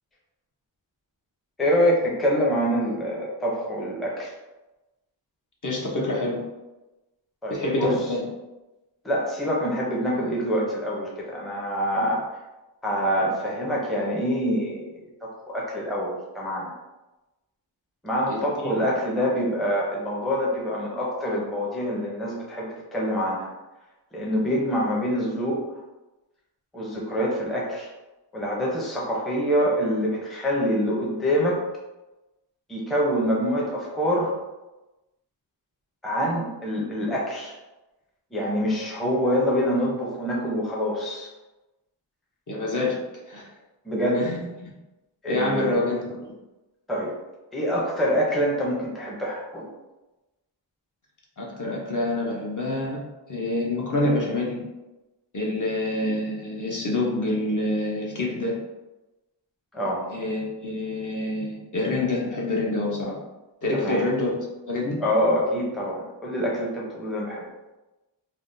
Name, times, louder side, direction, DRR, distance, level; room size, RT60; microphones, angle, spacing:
voice 1, 1.6-4.3 7.4-8.0 9.0-12.3 12.8-16.7 18.0-23.5 24.1-25.6 26.7-27.9 28.3-31.6 32.7-34.3 36.0-37.6 38.3-41.3 43.8-44.2 45.2-45.9 46.9-47.1 47.5-49.7 59.7-60.0 63.7-64.1 65.0-67.4, equal, ahead, -4 dB, 0.5 m, -25 dB
voice 2, 5.6-6.4 7.5-8.2 12.0-12.1 18.3-18.7 42.5-43.0 43.3-43.5 44.1-44.7 45.3-46.2 51.4-53.0 53.3-54.6 55.3-58.6 60.1-63.2 63.6-64.4 64.7-65.0, left 2 dB, 45° left, -3 dB, 0.7 m, -27 dB
3.4 x 2.1 x 2.5 m, 1.1 s
wide cardioid pair, 115°, 45 cm